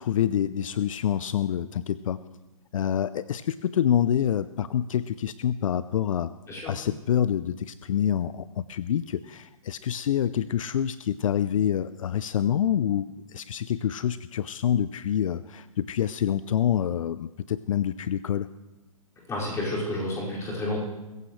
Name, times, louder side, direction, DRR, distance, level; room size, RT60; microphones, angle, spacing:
voice 1, 0.0-2.2 2.7-6.3 6.7-18.5, left 9 dB, 65° left, 15 dB, 0.5 m, -27 dB
voice 2, 19.3-20.8, left 1 dB, 15° left, -5 dB, 5.3 m, -30 dB
22.0 x 15.0 x 3.2 m, 1.1 s
hypercardioid pair, 130°, 18 cm